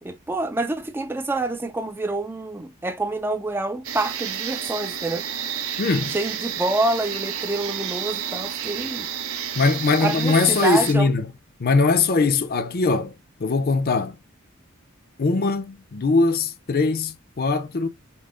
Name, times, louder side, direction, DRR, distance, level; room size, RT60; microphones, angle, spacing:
voice 1, 0.0-5.3 6.1-9.1 10.0-11.1, right 2 dB, 10° right, 0.4 m, -27 dB
sound 1, 3.8-10.9, right 8 dB, 75° right, 0.9 m, -31 dB
voice 2, 5.8-6.1 9.6-11.2 11.6-13.1 13.4-14.2 15.2-17.9, left 3 dB, 45° left, 0.6 m, -21 dB
5.4 x 2.1 x 3.7 m
head